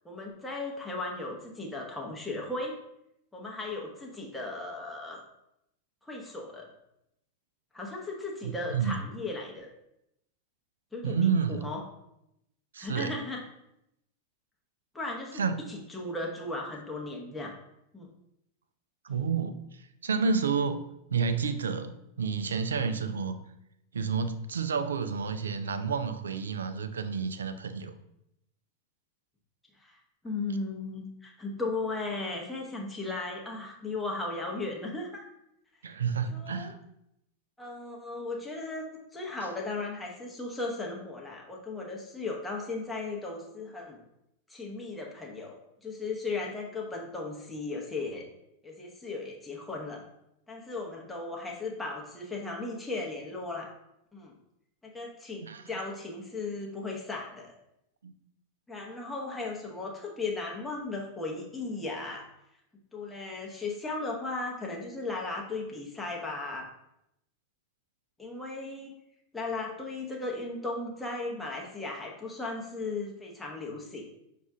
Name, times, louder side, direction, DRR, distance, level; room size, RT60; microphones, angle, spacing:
voice 1, 0.0-2.7 3.3-5.2 6.1-6.7 7.7-9.7 10.9-11.8 12.8-13.4 14.9-15.4 15.7-17.5 17.9-18.1 29.8-30.0 30.2-35.2 36.3-36.7 37.6-44.0 44.5-48.3 48.6-50.0 50.5-53.7 54.1-54.3 54.8-57.5 58.7-62.2 62.9-66.7 68.2-68.9 69.3-74.1, left 3 dB, 5° left, -2 dB, 0.8 m, -36 dB
voice 2, 8.4-8.9 11.0-11.7 12.7-13.2 15.3-15.6 19.0-23.4 23.9-27.9 30.3-30.4 35.8-36.8 55.4-55.8 58.0-58.1, right 6 dB, 70° right, 10 dB, 0.3 m, -30 dB
6.1 x 2.5 x 3.4 m, 0.81 s
figure-of-eight pair, 90°, 0 cm